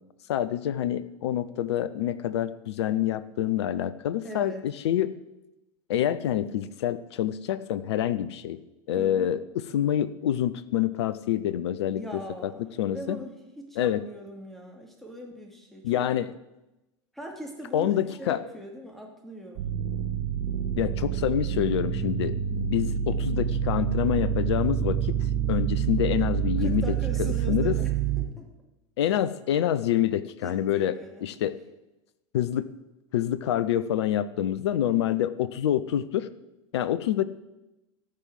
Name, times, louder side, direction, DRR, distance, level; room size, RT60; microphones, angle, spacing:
voice 1, 0.3-5.1 5.9-8.6 8.9-12.0 12.8-13.2 13.8-14.0 15.8-16.3 17.7-18.4 20.8-25.2 25.5-26.9 27.2-27.8 29.0-30.9 31.2-31.6 32.3-32.7 33.1-36.3 36.7-37.2, left 11 dB, 60° left, 15 dB, 0.7 m, -27 dB
voice 2, 4.2-4.6 8.9-9.3 11.9-16.0 17.1-19.7 26.6-28.5 30.4-31.3, equal, ahead, 1 dB, 2.7 m, -41 dB
sound 1, 19.6-28.3, right 9 dB, 50° right, 1.7 m, -27 dB
13.5 x 6.3 x 7.8 m, 0.97 s
figure-of-eight pair, 80°, 16 cm